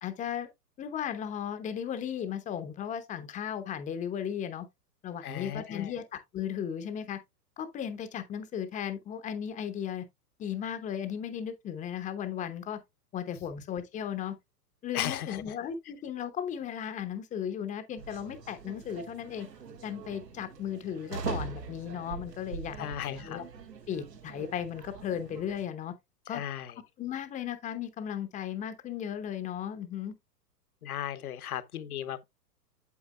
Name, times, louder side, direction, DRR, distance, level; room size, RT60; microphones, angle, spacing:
voice 1, 0.0-0.5 0.8-4.7 5.0-7.2 7.6-10.0 10.4-12.8 13.1-14.4 14.8-19.5 19.8-23.5 23.9-25.9 26.3-26.4 27.0-30.1, left 9 dB, 15° left, 0.8 m, -36 dB
voice 2, 5.2-6.0 14.9-15.6 22.8-23.4 26.3-26.8 30.8-32.2, left 11 dB, 60° left, 1.1 m, -36 dB
sound 1, 18.0-25.7, right 5 dB, 80° right, 1.7 m, -42 dB
8.3 x 7.9 x 2.2 m
hypercardioid pair, 115°, 49 cm